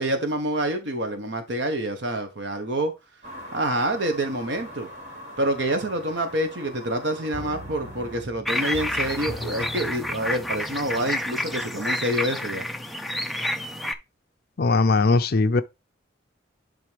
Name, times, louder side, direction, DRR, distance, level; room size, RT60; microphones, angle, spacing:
voice 1, 0.0-2.9 3.5-4.9 5.4-12.6, right 1 dB, 65° right, 1.1 m, -27 dB
sound 1, 3.2-8.2, equal, 40° right, 2.8 m, -42 dB
sound 2, 7.3-12.0 12.3-12.4, left 1 dB, 25° left, 1.5 m, -40 dB
sound 3, 8.5-13.9, left 1 dB, ahead, 0.5 m, -29 dB
voice 2, 14.6-15.6, left 3 dB, 50° left, 0.5 m, -19 dB
11.0 x 3.7 x 3.3 m
head